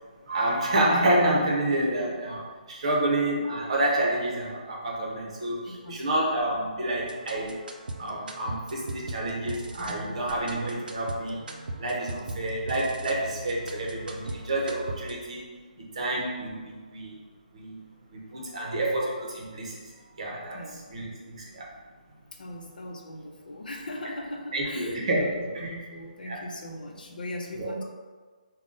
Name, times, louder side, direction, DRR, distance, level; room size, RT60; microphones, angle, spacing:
voice 1, 0.3-7.6 8.0-11.4 11.8-15.5 15.9-17.1 17.5-17.8 18.1-19.8 20.2-20.6 20.9-21.1 21.4-21.7 24.5-25.8 26.2-26.4 27.6-27.8, right 1 dB, 40° right, -3 dB, 0.8 m, -28 dB
voice 2, 5.7-6.3 20.5-20.8 22.3-27.8, left 1 dB, 70° left, 1 dB, 0.6 m, -40 dB
sound 1, 6.9-15.1, right 1 dB, 75° right, 0.5 m, -39 dB
3.6 x 2.2 x 3.8 m, 1.5 s
hypercardioid pair, 170°, 5 cm